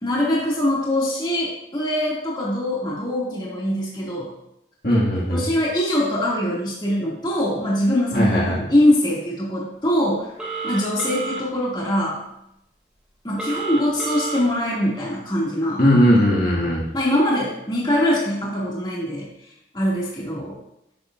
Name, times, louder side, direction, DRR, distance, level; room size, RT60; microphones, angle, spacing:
voice 1, 0.0-4.3 5.3-10.3 10.6-12.2 13.2-16.0 16.9-19.3 19.7-20.6, left 1 dB, 25° left, -6 dB, 2.4 m, -23 dB
voice 2, 4.8-5.4 8.1-8.6 15.8-16.8, equal, 55° left, -6 dB, 2.2 m, -18 dB
Telephone, 10.4-11.4 13.4-14.4, right 4 dB, 5° right, 2.5 m, -30 dB
12.0 x 7.8 x 2.6 m, 0.82 s
head